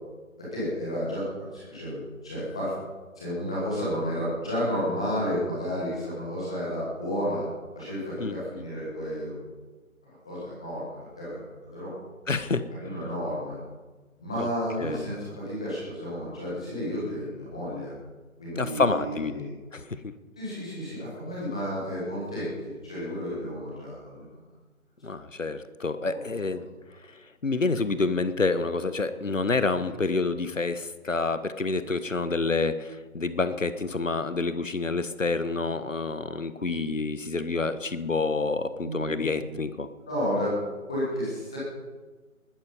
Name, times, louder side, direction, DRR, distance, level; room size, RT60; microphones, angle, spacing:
voice 1, 0.4-2.7 3.1-7.4 7.7-9.3 10.0-11.9 12.7-13.5 14.2-17.9 18.4-19.5 20.4-24.4 26.0-26.2 26.5-26.6 38.8-39.3 40.1-40.6 40.9-41.6, equal, 5° left, -8 dB, 1.3 m, -32 dB
voice 2, 8.2-8.6 12.3-12.6 14.4-14.5 14.8-15.1 18.6-19.4 19.7-20.0 25.0-26.7 27.4-39.9, left 3 dB, 60° left, 12 dB, 1.4 m, -28 dB
20.0 x 12.5 x 5.4 m, 1.3 s
figure-of-eight pair, 160°, 42 cm